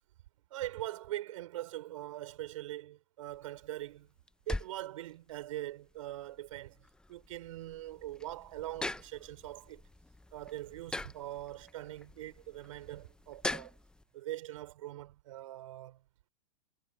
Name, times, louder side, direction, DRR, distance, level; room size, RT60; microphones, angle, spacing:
voice 1, 0.5-4.1 4.5-6.8 7.1-9.8 10.3-13.8 14.1-16.0, right 15 dB, 60° right, 5.8 m, -42 dB
sound 1, 3.3-14.0, left 2 dB, 5° left, 0.8 m, -44 dB
hypercardioid pair, 110°, 19 cm